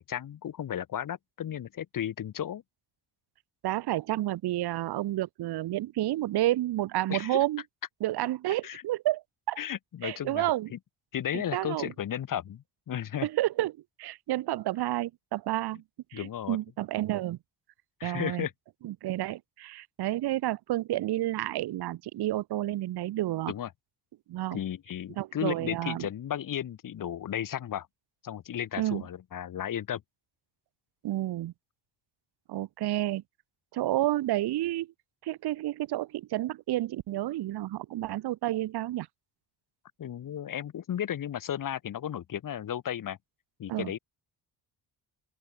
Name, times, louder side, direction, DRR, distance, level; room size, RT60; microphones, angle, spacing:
voice 1, 0.0-2.6 7.1-7.4 8.6-8.8 9.6-10.8 11.1-13.3 16.1-16.6 18.0-18.5 23.5-23.7 24.5-27.9 28.2-30.0 40.0-43.2 43.6-44.0, left 10 dB, 45° left, 1.2 m, -34 dB
voice 2, 3.6-7.6 8.0-9.6 10.0-10.7 11.3-11.9 13.2-13.7 14.0-15.8 16.1-17.4 18.0-18.5 18.8-23.5 24.3-24.6 25.2-26.1 28.8-29.0 31.0-31.5 32.5-33.2 33.7-34.9 35.2-39.1 43.7-43.9, right 15 dB, 60° right, 0.7 m, -30 dB
open air
cardioid pair, 150°, 44 cm